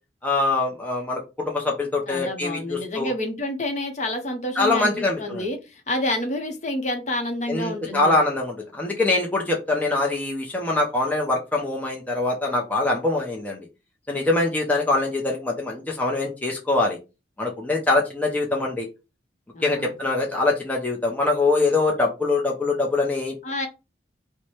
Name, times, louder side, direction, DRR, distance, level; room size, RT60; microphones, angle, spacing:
voice 1, 0.2-3.1 4.6-5.4 7.5-13.6 14.1-17.0 17.4-18.9 19.6-23.3, left 2 dB, 10° left, -1 dB, 0.5 m, -23 dB
voice 2, 2.1-8.1 19.5-19.9 23.4-23.7, left 1 dB, 40° left, 5 dB, 0.7 m, -29 dB
3.1 x 2.1 x 4.1 m, 0.28 s
head